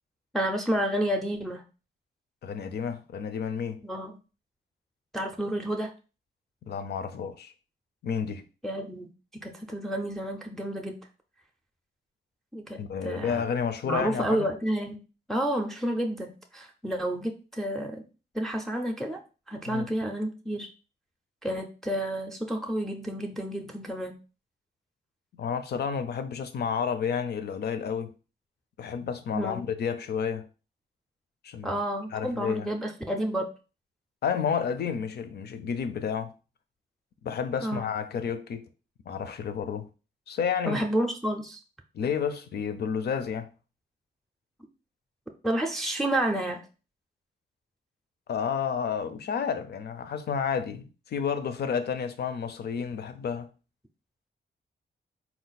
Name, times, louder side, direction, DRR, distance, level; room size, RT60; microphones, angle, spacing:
voice 1, 0.3-1.6 3.8-4.2 5.1-5.9 8.6-9.1 9.4-11.0 12.5-13.4 13.8-15.0 15.3-18.0 18.3-19.2 19.5-20.7 21.4-24.1 29.3-29.6 31.6-33.5 37.6-37.8 40.7-41.6 45.4-46.6, right 1 dB, ahead, 0.5 m, -30 dB
voice 2, 2.4-3.8 6.6-7.5 8.0-8.4 12.8-14.5 19.7-19.9 25.3-28.1 28.8-30.5 31.4-31.8 32.1-32.7 34.2-36.3 37.2-38.7 39.1-39.9 40.3-40.8 41.9-43.5 48.3-53.5, left 7 dB, 70° left, 0.5 m, -31 dB
4.4 x 2.4 x 4.0 m
wide cardioid pair, 155°, 18 cm